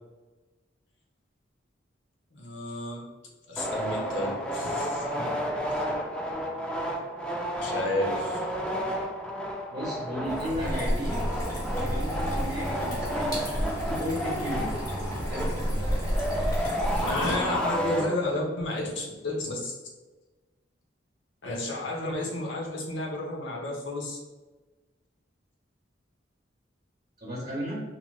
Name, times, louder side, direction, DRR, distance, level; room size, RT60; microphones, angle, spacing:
voice 1, 2.3-3.1 3.5-5.3 7.5-8.4 17.0-19.7 21.4-24.2, left 2 dB, 70° left, -1 dB, 0.7 m, -32 dB
sound 1, 3.6-18.5, equal, 5° left, 0.3 m, -32 dB
voice 2, 9.7-11.2 11.8-14.7 15.0-15.8 27.2-27.8, equal, 35° right, -7 dB, 0.8 m, -34 dB
sound 2, 10.2-17.8, equal, 20° left, 0.9 m, -31 dB
2.9 x 2.8 x 2.2 m, 1.2 s
head